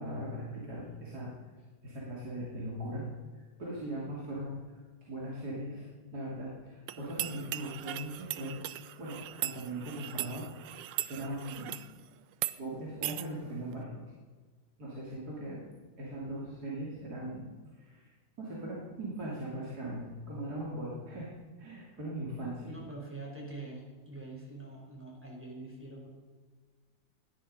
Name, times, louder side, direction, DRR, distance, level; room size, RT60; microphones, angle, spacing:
voice 1, 0.0-1.3 1.8-3.1 3.6-4.6 5.1-8.6 9.0-10.5 10.7-11.8 12.6-14.1 14.8-15.6 16.0-17.5 17.7-18.1 18.4-21.3 21.6-22.7, right 1 dB, 55° right, -5 dB, 3.3 m, -39 dB
sound 1, 6.9-11.9 12.3-12.6 13.0-13.3, right 14 dB, 80° right, 1.3 m, -38 dB
voice 2, 22.6-26.1, right 2 dB, 5° right, -2 dB, 4.5 m, -44 dB
17.5 x 11.5 x 5.5 m, 1.4 s
omnidirectional pair, 2.0 m